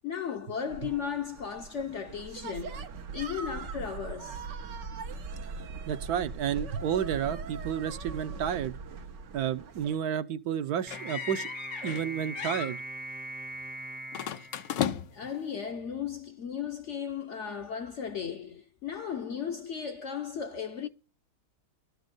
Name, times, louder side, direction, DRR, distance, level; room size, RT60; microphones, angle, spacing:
voice 1, 0.0-2.8 3.1-4.5 15.1-20.9, left 7 dB, 60° left, 0.8 m, -35 dB
sound 1, 0.7-10.0, right 4 dB, 90° right, 1.8 m, -40 dB
voice 2, 5.9-8.8 9.3-11.5 11.8-12.8, right 9 dB, 70° right, 1.2 m, -31 dB
sound 2, 10.9-12.1 12.4-12.7 14.1-15.3, left 10 dB, 85° left, 1.5 m, -35 dB
sound 3, 10.9-15.4, right 1 dB, 10° right, 0.4 m, -41 dB
12.5 x 5.3 x 7.7 m
omnidirectional pair, 1.8 m